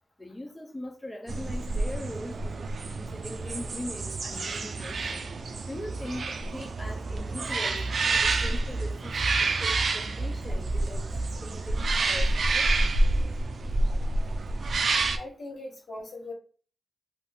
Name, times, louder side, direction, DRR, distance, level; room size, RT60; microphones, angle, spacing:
voice 1, 0.2-2.7 3.0-5.3 5.6-9.1 9.4-11.1 11.4-12.7, left 1 dB, 15° left, 0.5 m, -40 dB
sound 1, 1.3-15.2, right 2 dB, 60° right, 0.3 m, -28 dB
voice 2, 15.1-16.3, left 2 dB, 60° left, 1.3 m, -40 dB
2.5 x 2.4 x 3.4 m
cardioid pair, 80°, 0 cm